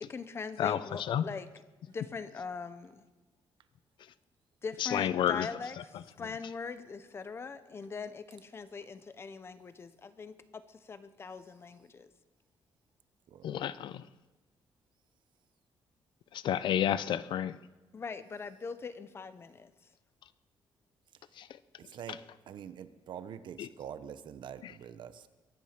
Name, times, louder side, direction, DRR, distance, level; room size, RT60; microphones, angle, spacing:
voice 1, 0.0-3.1 4.6-12.1 17.9-19.7, left 5 dB, 30° left, 12 dB, 0.8 m, -42 dB
voice 2, 4.8-5.5 13.4-14.0 16.4-17.5, left 10 dB, 65° left, 16 dB, 0.6 m, -29 dB
voice 3, 21.8-22.2 22.5-25.3, right 8 dB, 60° right, 12 dB, 0.9 m, -45 dB
22.5 x 10.5 x 5.9 m, 1.2 s
cardioid pair, 165°, 9 cm